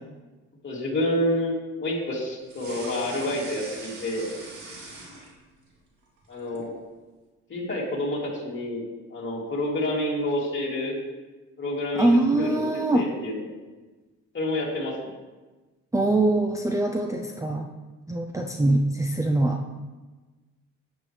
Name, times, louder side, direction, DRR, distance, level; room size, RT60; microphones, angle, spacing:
voice 1, 0.6-4.3 6.3-6.7 7.5-8.8 9.1-11.0 11.6-13.4 14.3-14.9, left 1 dB, 40° left, -4 dB, 3.1 m, -28 dB
sound 1, 2.5-5.7 6.0-6.7, right 2 dB, 70° right, 2.4 m, -42 dB
voice 2, 11.9-13.1 15.9-17.7 18.1-19.6, right 2 dB, 10° right, 2 dB, 0.6 m, -23 dB
9.0 x 8.3 x 3.4 m, 1.2 s
cardioid pair, 90°, 30 cm